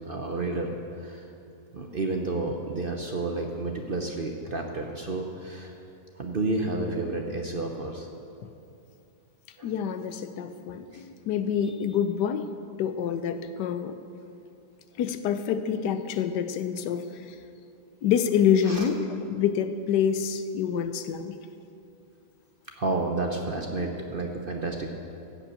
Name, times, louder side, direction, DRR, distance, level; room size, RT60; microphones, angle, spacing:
voice 1, 0.1-1.2 1.7-5.7 6.2-8.1 9.6-9.7 10.9-11.0 18.6-18.9 22.8-25.0, right 2 dB, 45° right, 2 dB, 0.7 m, -31 dB
voice 2, 9.6-12.4 12.8-14.0 15.0-17.0 18.0-19.0 19.3-21.3 23.8-23.9, left 8 dB, 85° left, 10 dB, 1.3 m, -26 dB
14.5 x 5.5 x 8.6 m, 2.6 s
omnidirectional pair, 1.8 m